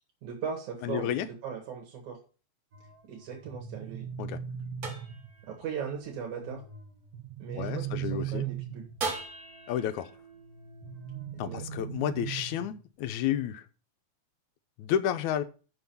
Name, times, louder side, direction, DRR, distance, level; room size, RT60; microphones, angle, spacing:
voice 1, 0.2-2.2 3.1-4.1 5.4-6.6 7.4-8.9 11.4-11.6, right 7 dB, 80° right, 2.9 m, -38 dB
voice 2, 0.8-1.3 4.2-4.4 7.6-8.5 9.7-10.1 11.4-13.7 14.8-15.4, left 10 dB, 80° left, 2.1 m, -31 dB
sound 1, 2.7-8.0 9.0-12.4, right 3 dB, 40° right, 1.5 m, -43 dB
sound 2, 3.4-5.5 7.1-9.2 10.8-12.8, right 10 dB, 60° right, 2.0 m, -38 dB
6.1 x 6.0 x 7.0 m
omnidirectional pair, 3.3 m